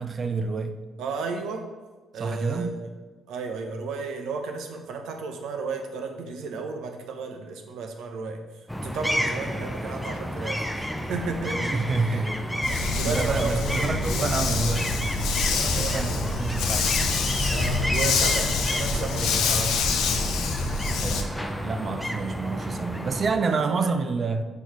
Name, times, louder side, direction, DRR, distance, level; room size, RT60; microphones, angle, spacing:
voice 1, 0.0-0.8 2.2-2.8 11.7-12.7 13.0-16.9 21.0-24.4, right 4 dB, 45° right, 0.5 m, -29 dB
voice 2, 1.0-1.7 2.1-2.9 3.3-8.4 8.8-12.2 12.7-14.6 15.7-16.3 17.5-19.8 23.4-23.9, right 4 dB, 85° right, 0.8 m, -34 dB
sound 1, 8.7-23.3, equal, ahead, 0.6 m, -31 dB
Dog, 12.6-21.2, left 4 dB, 85° left, 0.7 m, -26 dB
5.4 x 4.6 x 4.6 m
cardioid pair, 90°, 0 cm